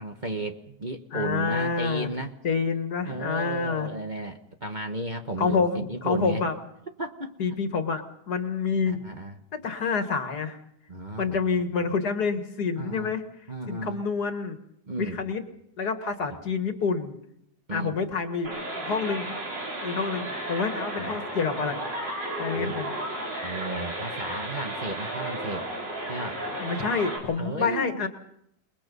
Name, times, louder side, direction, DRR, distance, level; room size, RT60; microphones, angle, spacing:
voice 1, 0.0-2.3 3.0-6.4 7.0-7.3 8.9-9.3 10.9-11.5 12.8-13.1 13.5-14.0 14.9-15.2 17.7-18.0 21.0-21.2 22.5-22.7 23.4-25.7 26.1-26.4 27.4-28.1, right 2 dB, 30° right, 4 dB, 1.3 m, -34 dB
voice 2, 1.1-2.1 2.4-3.9 5.4-6.6 7.4-9.0 9.5-10.6 11.2-13.2 13.7-14.6 15.0-15.4 15.8-17.1 17.7-19.4 19.8-21.8 22.4-22.9 26.6-28.1, left 5 dB, 65° left, 7 dB, 2.2 m, -28 dB
sound 1, 18.4-27.2, right 1 dB, 85° right, 6.0 m, -33 dB
28.5 x 20.5 x 5.5 m, 0.77 s
omnidirectional pair, 1.9 m